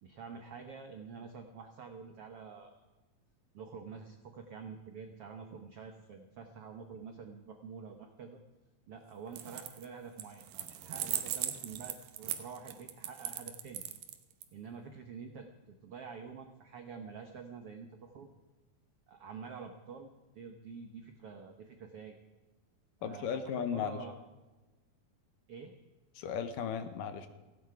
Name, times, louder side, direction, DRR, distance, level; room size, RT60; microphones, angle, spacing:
voice 1, 0.0-2.7 3.5-8.4 8.9-13.8 14.5-18.3 19.1-22.2 23.0-24.2 25.5-25.7, right 5 dB, 90° right, 5 dB, 1.2 m, -47 dB
sound 1, 9.3-9.9 10.2-14.4, right 11 dB, 70° right, 2.4 m, -38 dB
voice 2, 23.0-24.0 26.2-27.3, left 7 dB, 70° left, 9 dB, 2.3 m, -36 dB
17.0 x 16.0 x 4.8 m, 1.2 s
omnidirectional pair, 4.3 m